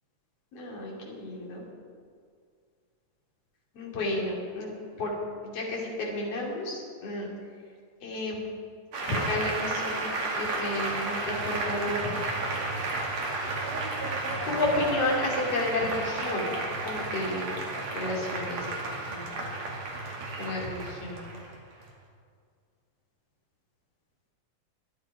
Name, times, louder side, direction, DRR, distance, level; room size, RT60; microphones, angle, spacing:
voice 1, 0.5-1.6 3.7-5.1 5.4-7.3 8.0-8.5 9.1-12.2 14.5-16.5 16.8-17.5 17.9-18.7 19.1-19.3 20.4-21.2, left 2 dB, 50° left, -3 dB, 3.9 m, -31 dB
Applause, 8.9-21.9, right 2 dB, 55° right, 3.3 m, -32 dB
24.5 x 10.0 x 4.9 m, 2.1 s
omnidirectional pair, 3.6 m